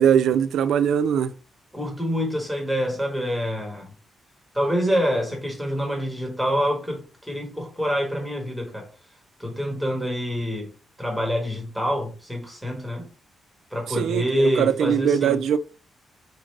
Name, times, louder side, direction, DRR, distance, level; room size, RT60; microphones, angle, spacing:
voice 1, 0.0-1.3 13.9-15.6, right 8 dB, 75° right, 0.3 m, -21 dB
voice 2, 1.7-3.9 4.5-8.9 9.4-10.7 11.0-13.1 13.7-15.4, equal, ahead, 1.0 m, -26 dB
4.2 x 2.5 x 3.2 m
cardioid pair, 160°, 0 cm